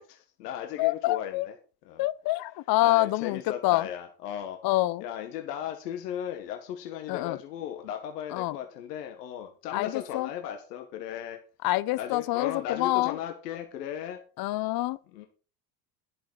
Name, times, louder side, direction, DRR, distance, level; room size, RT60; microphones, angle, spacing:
voice 1, 0.0-1.6 1.8-2.1 2.8-4.6 5.0-11.4 12.0-14.2 15.1-15.3, left 10 dB, 80° left, 1.6 m, -36 dB
voice 2, 0.8-1.5 2.0-3.9 4.6-5.0 7.1-7.4 8.3-8.6 9.7-10.3 11.6-13.1 14.4-15.0, left 18 dB, 50° left, 0.8 m, -26 dB
10.5 x 8.6 x 4.7 m
hypercardioid pair, 80°, 47 cm